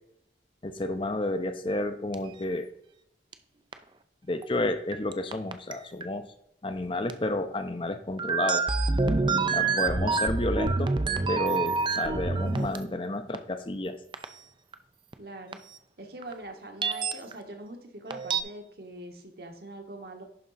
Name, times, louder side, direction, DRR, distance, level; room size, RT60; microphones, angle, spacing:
voice 1, 0.6-2.7 4.2-6.3 6.6-8.7 9.5-10.9 11.3-14.0, left 2 dB, 30° left, 8 dB, 0.6 m, -31 dB
sound 1, 2.1-2.2 3.3-3.4 3.7-3.8 4.4-4.5 4.9-5.7 6.0-6.1 7.1-7.2 8.2-13.0 13.3-13.4 14.1-14.2 14.7-14.8 15.1-15.2 15.5-15.6 16.2-16.3 16.8-17.3 18.1-18.4, right 4 dB, 25° right, 0.5 m, -27 dB
voice 2, 9.8-10.2 15.2-15.6 16.0-20.2, right 1 dB, 60° right, 4 dB, 1.4 m, -43 dB
11.0 x 3.7 x 5.6 m, 0.76 s
head